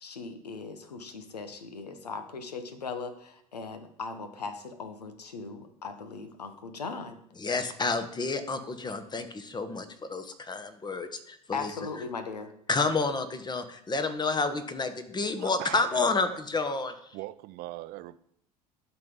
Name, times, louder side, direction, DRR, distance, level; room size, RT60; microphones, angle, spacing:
voice 1, 0.0-7.2 11.5-12.5, left 4 dB, 90° left, 10 dB, 0.8 m, -38 dB
voice 2, 7.4-11.7 12.7-17.2, left 3 dB, 20° left, 9 dB, 1.0 m, -30 dB
voice 3, 15.4-16.4 17.1-18.2, right 17 dB, 50° right, 14 dB, 0.5 m, -41 dB
12.0 x 4.0 x 3.7 m, 0.70 s
hypercardioid pair, 70°, 20 cm